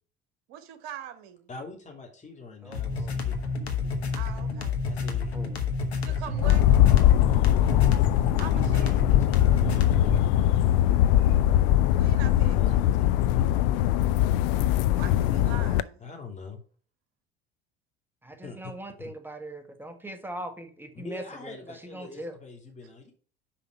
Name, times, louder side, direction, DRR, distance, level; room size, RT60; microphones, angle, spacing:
voice 1, 0.5-1.5 4.1-4.8 6.0-6.7 8.4-9.0 11.9-12.9 15.0-16.0, right 10 dB, 65° right, 1.3 m, -42 dB
voice 2, 1.5-3.4 4.9-5.4 6.1-6.6 8.5-10.2 12.6-14.1 16.0-16.6 18.4-18.7 19.0-19.1 20.9-23.1, left 4 dB, 25° left, 2.8 m, -44 dB
voice 3, 2.6-3.1 5.3-5.5 18.2-21.5 21.9-22.3, right 1 dB, 5° right, 1.5 m, -40 dB
sound 1, 2.7-10.3, left 4 dB, 85° left, 1.1 m, -30 dB
sound 2, 6.4-15.8, left 13 dB, 65° left, 0.5 m, -21 dB
5.9 x 5.1 x 5.5 m
figure-of-eight pair, 65°, 31 cm